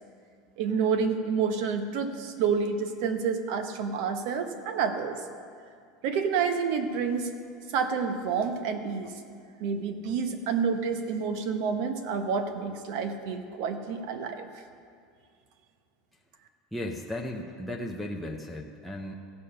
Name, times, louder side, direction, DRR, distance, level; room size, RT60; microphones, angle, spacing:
voice 1, 0.6-5.2 6.0-7.3 7.7-9.1 9.6-14.5, right 6 dB, 55° right, 7 dB, 1.0 m, -29 dB
voice 2, 16.7-19.1, left 1 dB, ahead, -1 dB, 0.6 m, -35 dB
15.5 x 6.8 x 5.6 m, 2.3 s
supercardioid pair, 165°, 3 cm